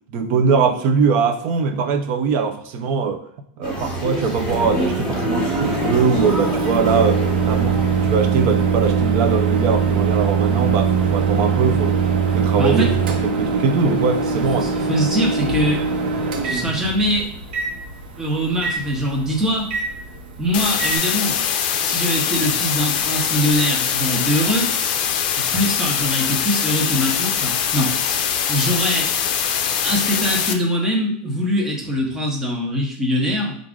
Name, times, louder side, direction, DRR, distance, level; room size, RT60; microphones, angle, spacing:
voice 1, 0.1-3.2 3.6-12.0 12.3-14.7, right 5 dB, 35° right, 6 dB, 0.6 m, -21 dB
sound 1, 3.6-8.8, left 1 dB, 15° left, 1.0 m, -28 dB
Microwave oven, 4.5-21.0, right 5 dB, 80° right, 1.0 m, -22 dB
voice 2, 12.6-12.9 14.5-15.8 16.4-17.3 18.2-19.7 20.4-21.4 21.8-24.7 25.4-29.1 29.8-33.6, equal, 10° right, -2 dB, 0.9 m, -22 dB
sound 2, 20.5-30.5, left 8 dB, 55° left, 0.5 m, -22 dB
4.6 x 2.5 x 3.7 m, 0.68 s
supercardioid pair, 165°, 5 cm